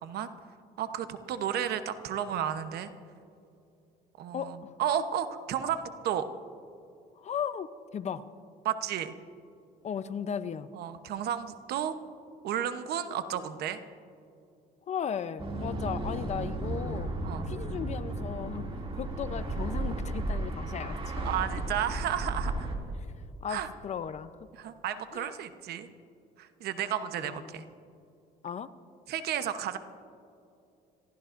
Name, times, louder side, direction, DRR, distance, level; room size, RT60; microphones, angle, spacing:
voice 1, 0.8-2.9 4.2-6.3 8.6-9.1 10.7-11.9 12.4-13.8 17.2-17.5 21.2-22.7 23.5-23.7 24.5-25.9 26.4-27.6 29.1-29.8, right 9 dB, 70° right, 10 dB, 0.9 m, -32 dB
voice 2, 4.3-4.7 7.2-8.3 9.8-10.7 14.9-17.1 17.5-18.7 19.0-21.3 23.4-24.3 25.1-25.3 27.2-27.7 28.4-28.7, left 8 dB, 40° left, 13 dB, 0.6 m, -36 dB
sound 1, 15.4-22.8, right 2 dB, 35° right, 2.5 m, -34 dB
26.5 x 15.0 x 2.6 m, 2.6 s
cardioid pair, 110°, 17 cm